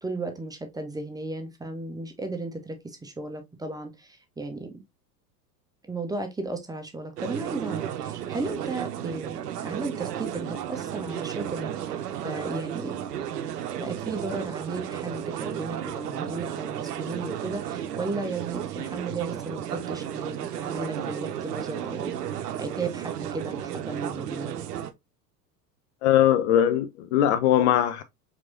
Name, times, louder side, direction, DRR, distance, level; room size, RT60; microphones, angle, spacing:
voice 1, 0.0-4.8 5.8-12.0 12.2-13.0 13.8-24.6, right 3 dB, 10° right, 0.8 m, -35 dB
sound 1, 7.2-24.9, right 10 dB, 70° right, 0.7 m, -33 dB
voice 2, 26.0-28.0, left 11 dB, 45° left, 0.5 m, -21 dB
4.6 x 3.9 x 2.5 m
figure-of-eight pair, 80°, 50 cm